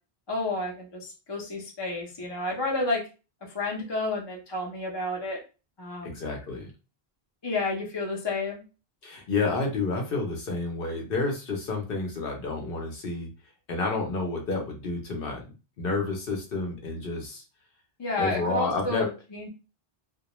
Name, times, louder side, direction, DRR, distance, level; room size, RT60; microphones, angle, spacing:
voice 1, 0.3-3.0 3.4-5.4 5.8-6.1 7.4-8.6 18.0-19.5, left 2 dB, 30° left, -1 dB, 0.6 m, -31 dB
voice 2, 6.0-6.7 9.0-13.3 13.7-15.4 15.8-17.4 18.2-19.1, left 3 dB, 65° left, 1 dB, 0.8 m, -30 dB
2.2 x 2.1 x 2.9 m, 0.32 s
omnidirectional pair, 1.0 m